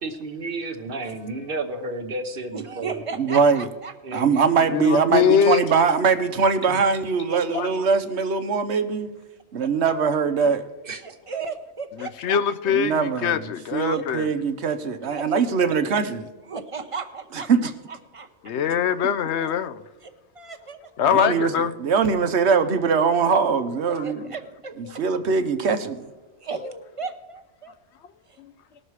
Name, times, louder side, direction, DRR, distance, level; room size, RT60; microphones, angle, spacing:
voice 1, 0.0-2.9 4.0-4.3 6.6-6.8 10.8-11.0, right 2 dB, 55° right, 1.2 m, -32 dB
voice 2, 2.5-4.2 7.3-7.6 11.0-12.4 13.9-14.0 14.7-14.8 15.0-15.4 16.5-18.3 20.0-20.9 23.2-23.3 23.9-24.8 26.4-27.7 28.3-28.4, right 5 dB, 30° right, 0.9 m, -36 dB
voice 3, 3.2-3.7 4.1-9.1 9.5-10.6 12.7-13.4 13.7-16.3 17.5-17.7 21.1-24.2 25.0-26.0, right 5 dB, 75° right, 1.1 m, -22 dB
voice 4, 4.7-5.6 7.5-7.7 12.0-14.3 18.4-19.8 21.0-21.7, left 8 dB, 75° left, 0.9 m, -22 dB
19.0 x 6.6 x 4.7 m
omnidirectional pair, 1.2 m